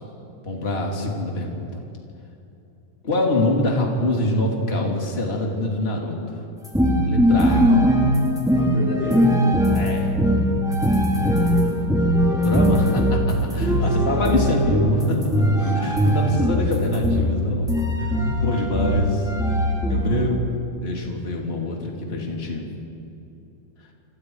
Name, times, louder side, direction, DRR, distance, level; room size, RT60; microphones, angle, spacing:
voice 1, 0.4-1.8 3.0-6.2 7.0-7.7 9.7-10.2 12.4-19.3 19.9-20.3 20.8-22.7, left 1 dB, 20° left, -1 dB, 2.9 m, -25 dB
sound 1, 6.6-20.0, equal, ahead, 2.5 m, -20 dB
voice 2, 7.4-7.8 8.5-9.4 11.2-11.9 13.5-14.2 15.6-16.7 18.2-18.6 19.8-20.3, left 1 dB, 70° left, -2 dB, 6.8 m, -33 dB
28.5 x 27.5 x 4.9 m, 2.8 s
omnidirectional pair, 4.0 m